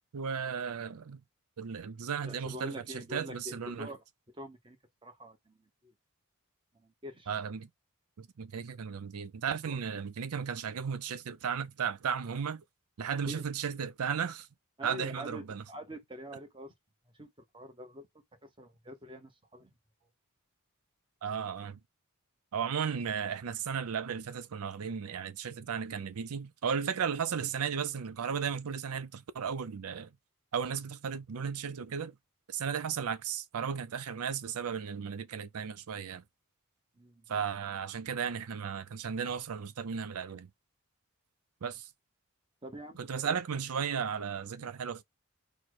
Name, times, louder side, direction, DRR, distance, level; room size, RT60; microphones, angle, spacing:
voice 1, 0.1-1.2 1.6-3.9 7.3-7.7 8.2-12.6 13.0-14.5 14.8-15.6 21.2-21.8 22.5-30.1 30.5-32.2 32.5-36.2 37.3-40.5 41.6-41.9 43.0-45.0, right 7 dB, 85° right, 0.5 m, -35 dB
voice 2, 2.3-4.0 4.3-4.8 5.0-5.6 5.8-5.9 6.8-7.3 9.6-9.8 13.3-13.5 14.8-16.7 17.1-17.3 17.5-18.1 18.4-19.7 37.0-37.2 42.6-43.4, equal, 20° right, 1.0 m, -45 dB
4.2 x 2.2 x 4.6 m
head